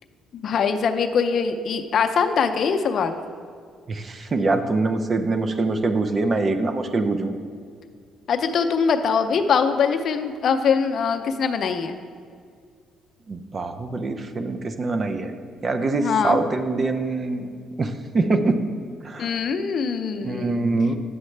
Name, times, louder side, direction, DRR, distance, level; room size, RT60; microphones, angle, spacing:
voice 1, 0.3-3.2 8.3-12.0 16.0-16.4 19.2-20.6, left 6 dB, 55° left, 7 dB, 0.5 m, -22 dB
voice 2, 3.9-7.4 13.3-15.3 15.6-17.5 17.8-18.6 19.0-19.4 20.2-21.0, right 3 dB, 35° right, 8 dB, 0.6 m, -24 dB
9.3 x 7.2 x 3.3 m, 2.1 s
cardioid pair, 100°, 0 cm